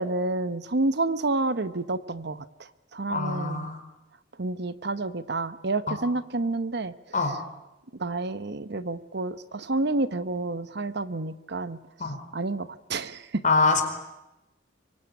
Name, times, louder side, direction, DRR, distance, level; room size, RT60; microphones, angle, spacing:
voice 1, 0.0-2.4 2.9-3.7 4.4-6.9 8.0-11.8 12.3-13.4, right 2 dB, 60° right, 13 dB, 1.0 m, -29 dB
voice 2, 3.1-3.8 5.9-6.0 7.1-7.4 12.0-12.2 13.4-13.8, left 3 dB, 40° left, 5 dB, 4.7 m, -24 dB
25.0 x 24.0 x 10.0 m, 0.94 s
head